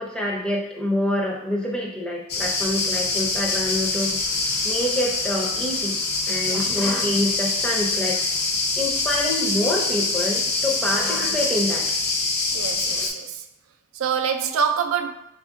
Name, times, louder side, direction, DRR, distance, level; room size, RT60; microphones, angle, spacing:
voice 1, 0.0-4.2 4.6-6.0 6.3-8.2 8.8-11.9 12.9-13.1, left 1 dB, 5° left, 0.5 m, -26 dB
sound 1, 2.3-13.1, left 3 dB, 50° left, 0.6 m, -24 dB
voice 2, 6.5-6.8 10.7-11.0 12.5-13.4 13.9-15.1, right 7 dB, 75° right, 0.3 m, -26 dB
4.2 x 2.5 x 3.6 m
head